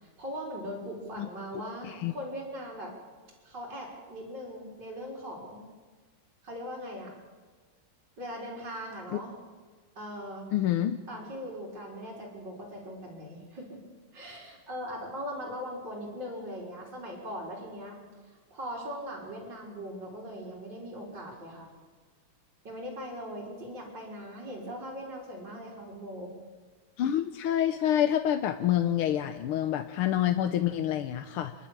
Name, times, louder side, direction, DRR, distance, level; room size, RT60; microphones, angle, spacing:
voice 1, 0.2-2.9 3.4-5.6 6.4-7.1 8.2-9.3 9.9-10.5 11.1-13.8 14.1-18.0 18.2-21.7 22.6-26.3, equal, 50° right, -5 dB, 5.1 m, -40 dB
voice 2, 10.5-11.0 27.0-31.5, left 11 dB, 80° left, 7 dB, 1.7 m, -27 dB
28.5 x 11.5 x 8.9 m, 1.4 s
omnidirectional pair, 2.4 m